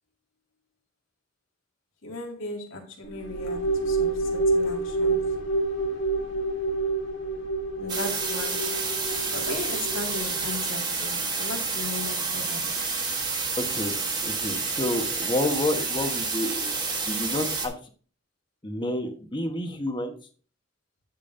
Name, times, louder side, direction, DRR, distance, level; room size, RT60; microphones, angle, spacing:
voice 1, 2.0-5.3 7.8-8.7 9.3-12.7, left 2 dB, 80° left, 2.3 m, -37 dB
sound 1, 3.0-10.6, right 2 dB, 65° left, 1.7 m, -28 dB
sound 2, 7.9-17.7, right 4 dB, 20° right, 1.4 m, -29 dB
voice 2, 13.6-13.9 14.2-16.8 17.1-17.7 18.6-20.1, left 1 dB, 25° left, 1.2 m, -29 dB
9.7 x 6.7 x 2.7 m
head